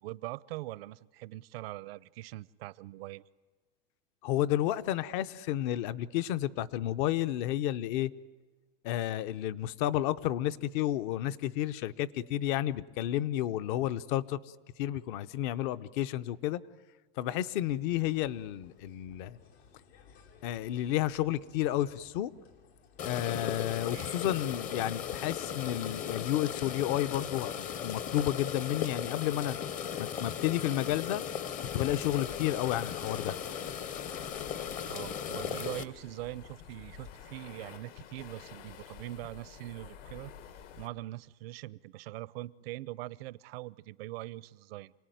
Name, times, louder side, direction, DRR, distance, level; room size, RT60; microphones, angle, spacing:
voice 1, 0.0-3.2 23.9-24.2 34.9-40.3 40.8-44.9, right 17 dB, 70° right, 20 dB, 0.7 m, -42 dB
voice 2, 4.2-8.1 8.8-14.4 14.8-16.6 17.2-19.4 20.4-22.3 23.0-29.6 30.0-31.2 31.7-33.3, left 13 dB, 55° left, 15 dB, 0.8 m, -31 dB
sound 1, 17.6-37.2, left 6 dB, 90° left, 3.5 m, -59 dB
sound 2, 23.0-35.8, left 8 dB, 25° left, 0.7 m, -37 dB
sound 3, 31.6-40.9, left 8 dB, 70° left, 2.0 m, -51 dB
27.5 x 18.5 x 9.3 m, 1.3 s
supercardioid pair, 150°, 31 cm